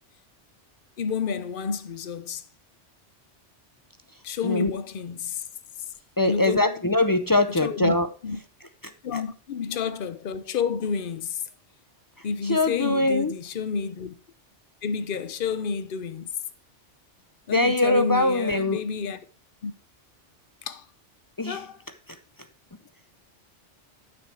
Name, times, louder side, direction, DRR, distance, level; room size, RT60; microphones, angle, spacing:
voice 1, 1.0-2.4 4.2-5.5 6.2-6.7 7.6-8.0 8.2-8.4 9.0-11.4 12.2-14.1 14.8-16.3 17.5-19.2 19.6-19.7 20.6-20.8 21.5-21.8, left 6 dB, 50° left, 0.9 m, -30 dB
voice 2, 6.2-8.1 8.8-8.9 12.5-13.3 17.5-18.8 21.4-21.6, left 2 dB, 35° left, 0.3 m, -22 dB
8.9 x 7.0 x 4.7 m
omnidirectional pair, 1.2 m